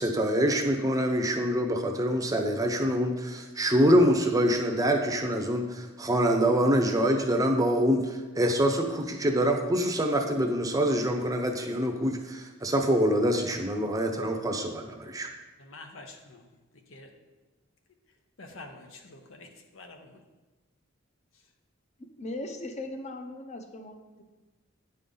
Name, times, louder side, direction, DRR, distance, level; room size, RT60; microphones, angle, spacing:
voice 1, 0.0-15.3, equal, 20° right, 4 dB, 0.7 m, -25 dB
voice 2, 15.7-16.1 16.9-17.1 18.4-19.5 19.7-20.0, left 2 dB, 80° left, 5 dB, 0.9 m, -46 dB
voice 3, 22.2-24.2, left 2 dB, 35° left, 5 dB, 0.8 m, -38 dB
9.3 x 5.5 x 3.9 m, 1.2 s
head